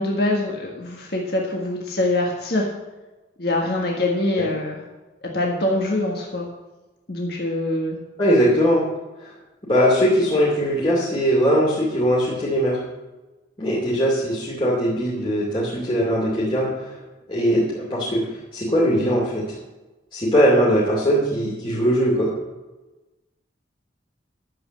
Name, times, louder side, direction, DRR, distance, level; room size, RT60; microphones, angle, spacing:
voice 1, 0.0-2.7 3.4-4.8 5.2-6.5 7.1-8.0, left 1 dB, 55° left, -1 dB, 1.6 m, -24 dB
voice 2, 8.2-8.9 9.2-9.3 9.7-12.8 13.6-16.9 17.3-18.3 18.5-19.6 20.1-22.3, equal, 25° left, -6 dB, 2.6 m, -20 dB
11.0 x 7.7 x 7.6 m, 1.1 s
head